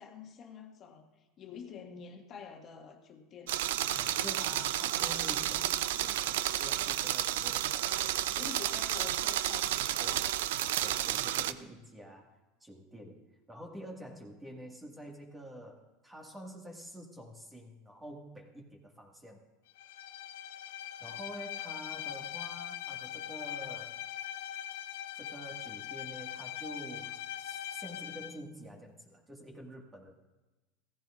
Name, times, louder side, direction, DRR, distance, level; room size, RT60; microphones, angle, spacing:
voice 1, 0.0-3.6 7.9-8.1 8.4-10.1, left 7 dB, 35° left, 3 dB, 1.7 m, -48 dB
sound 1, 3.5-11.5, right 12 dB, 80° right, 0.5 m, -31 dB
voice 2, 3.9-9.4 10.0-10.3 10.8-19.4 21.0-24.0 25.2-30.1, equal, 10° right, 1 dB, 1.9 m, -48 dB
Bowed string instrument, 19.8-28.4, left 12 dB, 80° left, 0.5 m, -41 dB
16.5 x 15.0 x 2.5 m, 1.1 s
supercardioid pair, 125°, 0 cm